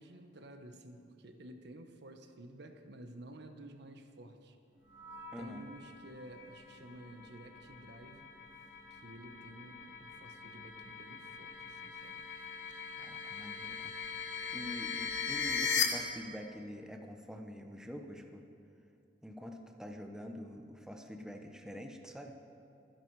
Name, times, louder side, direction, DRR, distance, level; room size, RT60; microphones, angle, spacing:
voice 1, 0.0-4.6 5.4-8.3 8.9-12.2, right 1 dB, 65° right, 6 dB, 1.1 m, -52 dB
sound 1, 4.9-15.8, left 6 dB, 85° left, 2.0 m, -40 dB
voice 2, 5.3-5.7 13.0-13.9 14.5-18.4 19.2-22.3, equal, 5° right, 3 dB, 0.9 m, -46 dB
24.5 x 10.5 x 4.8 m, 2.5 s
head